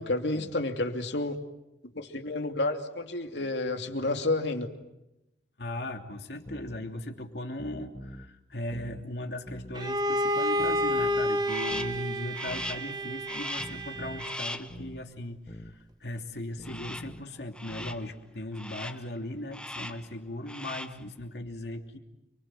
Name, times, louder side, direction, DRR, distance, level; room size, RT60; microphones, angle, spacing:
voice 1, 0.0-1.4 1.9-4.7, left 2 dB, 85° left, 5 dB, 2.8 m, -30 dB
voice 2, 5.6-22.0, left 1 dB, 70° left, 4 dB, 3.1 m, -38 dB
sound 1, 6.5-6.8 7.6-8.3 8.7-9.1 9.5-9.8 10.6-11.3 11.7-12.0 12.5-12.8 13.6-14.3 14.7-15.0 15.5-15.8 16.6-17.3 17.7-18.0, equal, 35° left, 1.6 m, -44 dB
Bowed string instrument, 9.7-14.6, equal, 25° right, 1.4 m, -30 dB
Crow, 11.5-12.0 12.3-12.9 13.3-13.8 14.2-14.7 16.6-17.2 17.5-18.1 18.5-19.1 19.5-20.1 20.4-21.0, left 1 dB, 5° left, 1.0 m, -39 dB
30.0 x 24.0 x 7.8 m, 0.90 s
head